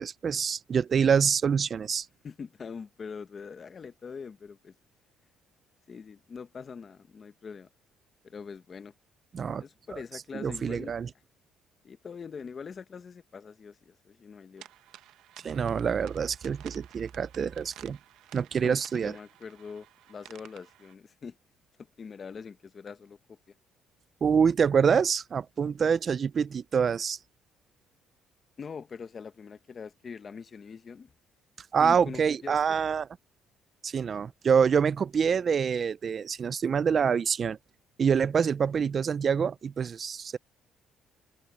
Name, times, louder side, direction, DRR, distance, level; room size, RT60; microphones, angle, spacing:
voice 1, 0.0-2.1 9.3-9.6 9.9-10.0 10.3-11.1 15.4-18.0 18.3-19.1 24.2-27.2 31.7-33.1 33.8-37.6 38.0-40.4, right 6 dB, 30° right, 0.3 m, -26 dB
voice 2, 2.2-4.8 5.9-7.7 8.2-8.9 9.6-10.9 11.8-14.7 18.6-21.4 21.8-23.6 28.6-31.1 31.8-32.8, left 5 dB, 30° left, 0.8 m, -43 dB
sound 1, 14.6-20.9, right 13 dB, 75° right, 0.8 m, -53 dB
cardioid pair, 160°, 0 cm